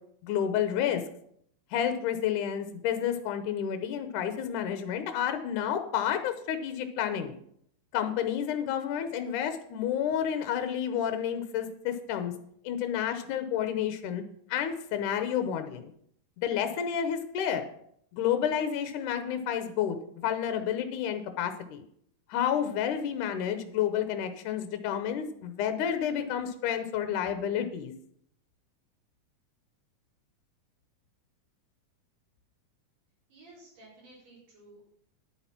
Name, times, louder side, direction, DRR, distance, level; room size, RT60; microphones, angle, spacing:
voice 1, 0.2-1.0 1.7-7.3 7.9-12.3 12.6-14.2 14.5-15.9 16.4-17.7 18.1-21.8 22.3-27.9, left 9 dB, 75° left, 8 dB, 2.3 m, -30 dB
voice 2, 33.3-34.8, right 2 dB, 75° right, -6 dB, 6.3 m, -54 dB
10.5 x 8.8 x 5.8 m, 0.68 s
omnidirectional pair, 3.9 m